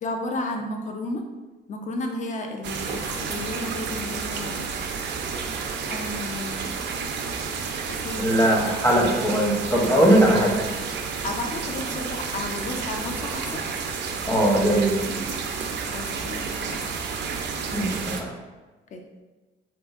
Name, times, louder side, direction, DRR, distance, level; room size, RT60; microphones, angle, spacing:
voice 1, 0.0-1.2 1.7-4.7 5.9-6.7 8.0-8.3 9.7-10.0 11.2-13.6 15.9-16.9 18.9-19.0, left 2 dB, 40° left, 4 dB, 0.5 m, -33 dB
sound 1, 2.6-18.2, right 5 dB, 65° right, 0.4 m, -31 dB
voice 2, 8.2-10.5 14.3-14.9 17.7-18.3, right 1 dB, 15° left, -2 dB, 0.9 m, -20 dB
3.9 x 2.5 x 2.4 m, 1.2 s
cardioid pair, 90°, 20 cm